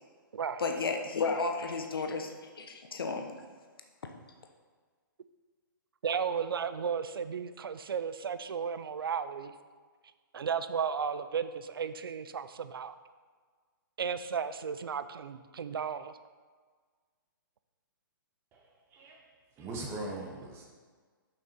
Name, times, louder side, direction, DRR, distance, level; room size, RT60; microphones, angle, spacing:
voice 1, 0.6-3.3, left 4 dB, 80° left, 4 dB, 0.9 m, -33 dB
voice 2, 6.0-9.5 10.3-12.9 14.0-16.1, right 7 dB, 85° right, 12 dB, 0.5 m, -34 dB
voice 3, 18.5-19.2 19.6-20.7, right 2 dB, 20° right, 0 dB, 1.2 m, -41 dB
6.6 x 5.7 x 4.3 m, 1.5 s
hypercardioid pair, 145°, 12 cm